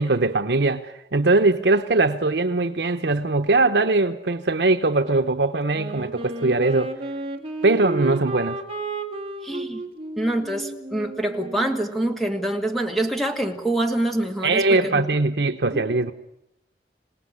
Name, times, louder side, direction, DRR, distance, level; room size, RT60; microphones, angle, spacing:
voice 1, 0.0-6.9 7.6-8.6 14.4-16.1, right 3 dB, 80° right, 7 dB, 0.9 m, -21 dB
Wind instrument woodwind instrument, 5.7-12.3, right 2 dB, 30° right, 2.1 m, -33 dB
voice 2, 9.4-9.8 10.2-15.1 15.7-15.9, right 1 dB, ahead, 4 dB, 2.1 m, -25 dB
26.5 x 18.5 x 9.8 m, 0.87 s
head